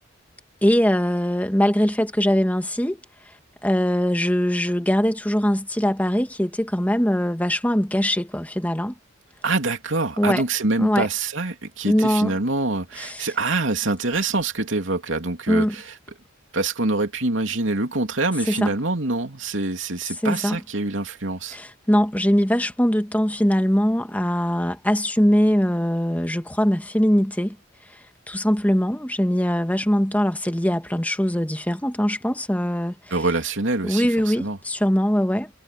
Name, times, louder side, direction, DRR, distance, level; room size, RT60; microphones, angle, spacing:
voice 1, 0.6-3.0 3.6-8.9 10.2-10.4 10.8-11.1 11.8-12.3 13.0-13.3 15.5-15.7 18.5-18.7 20.2-20.6 21.5-27.5 28.3-32.9 33.8-35.5, equal, 10° left, 1.7 m, -21 dB
voice 2, 9.4-15.9 16.5-21.6 33.1-34.6, right 3 dB, 70° right, 3.0 m, -25 dB
head